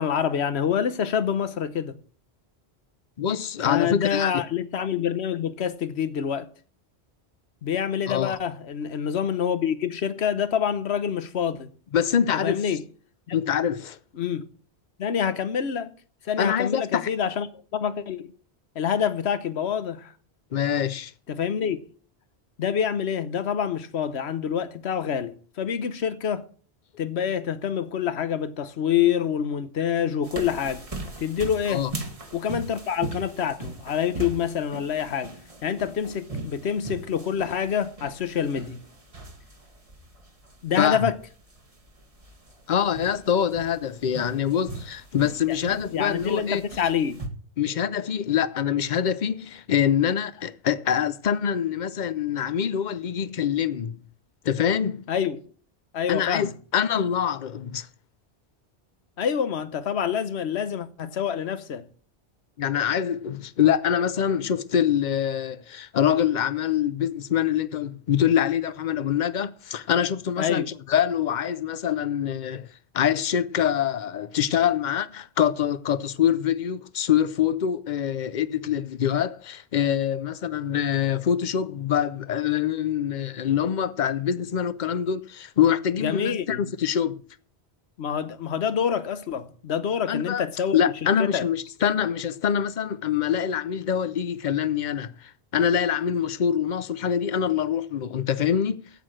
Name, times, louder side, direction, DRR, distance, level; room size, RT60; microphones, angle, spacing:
voice 1, 0.0-2.0 3.6-6.5 7.6-11.7 12.4-12.8 13.3-13.4 14.2-14.5 15.0-15.9 16.2-17.5 17.7-18.3 18.7-20.1 21.3-21.8 22.6-26.5 27.0-30.8 31.2-31.8 32.3-35.3 35.6-38.8 40.6-41.2 45.5-45.6 45.9-47.2 55.1-55.4 55.9-56.5 59.2-61.9 70.4-70.7 86.0-86.7 88.0-90.8 91.2-91.5, left 8 dB, 75° left, 1.2 m, -26 dB
voice 2, 3.2-4.3 8.1-8.3 11.9-12.6 13.3-14.0 16.4-17.1 20.5-21.1 31.7-31.9 40.8-41.1 42.7-46.6 47.6-54.0 54.4-55.0 56.1-57.9 62.6-72.7 72.9-87.2 90.1-90.4 90.7-98.8, left 9 dB, 50° left, 0.7 m, -25 dB
sound 1, 30.2-47.3, right 2 dB, 30° right, 1.6 m, -40 dB
9.0 x 8.5 x 7.6 m
omnidirectional pair, 1.1 m